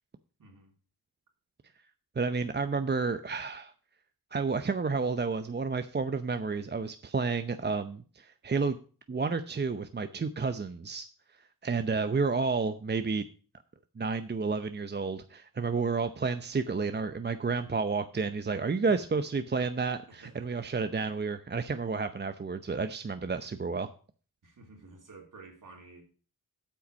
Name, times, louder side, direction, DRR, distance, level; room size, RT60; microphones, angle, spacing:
voice 1, 0.4-0.7 18.8-19.2 20.1-20.6 24.4-26.0, right 3 dB, 55° right, 3.3 m, -52 dB
voice 2, 2.2-3.7 4.3-8.8 9.1-11.1 11.6-13.2 14.0-23.9, right 4 dB, 30° right, 0.7 m, -31 dB
8.5 x 5.8 x 6.3 m
supercardioid pair, 45°, 37 cm